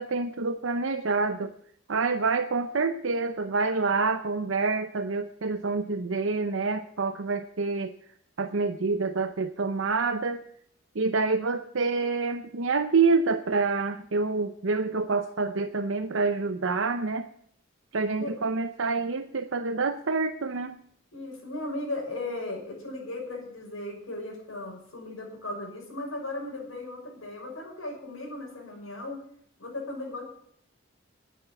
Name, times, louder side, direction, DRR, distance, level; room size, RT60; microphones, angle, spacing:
voice 1, 0.0-1.5 1.9-7.9 8.4-10.4 10.9-17.3 17.9-20.7, right 4 dB, 70° right, 8 dB, 0.7 m, -27 dB
voice 2, 21.1-29.2 29.6-30.2, left 2 dB, 80° left, 0 dB, 5.9 m, -36 dB
9.9 x 9.4 x 9.9 m, 0.66 s
head